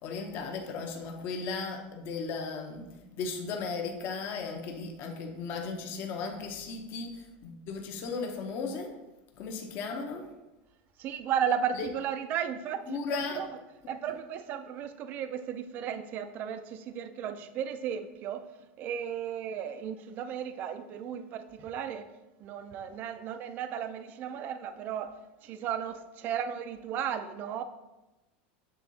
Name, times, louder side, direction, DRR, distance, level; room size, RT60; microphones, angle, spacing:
voice 1, 0.0-2.9 3.2-8.9 9.4-10.3 11.7-11.9 12.9-13.4, left 4 dB, 40° left, 3 dB, 0.9 m, -36 dB
voice 2, 11.0-13.6 13.9-18.4 18.8-22.0 22.4-25.1 25.4-27.6, right 8 dB, 35° right, 10 dB, 0.4 m, -34 dB
8.0 x 3.7 x 4.0 m, 1.0 s
supercardioid pair, 160°, 5 cm